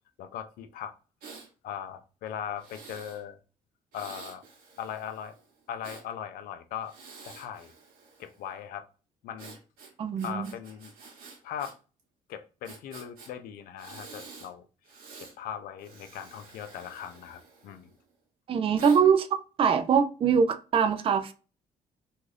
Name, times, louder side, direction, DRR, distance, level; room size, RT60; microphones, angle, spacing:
voice 1, 0.2-0.9 1.6-3.4 3.9-4.4 4.8-5.4 5.7-6.9 7.2-7.7 8.2-8.8 9.2-9.6 10.2-10.9 11.4-11.7 12.3-14.7 15.2-17.9, left 9 dB, 80° left, 0.4 m, -39 dB
Breathing, 1.2-1.5 2.6-3.2 3.9-6.0 6.8-8.4 9.4-11.7 12.0-12.1 12.6-13.3 13.8-14.5 14.8-15.3 15.8-18.0 18.8-19.0, right 4 dB, 75° right, 1.0 m, -49 dB
voice 2, 10.0-10.5 18.5-19.3 19.6-21.3, right 6 dB, 40° right, 0.3 m, -23 dB
2.5 x 2.4 x 3.2 m
cardioid pair, 90°, 15 cm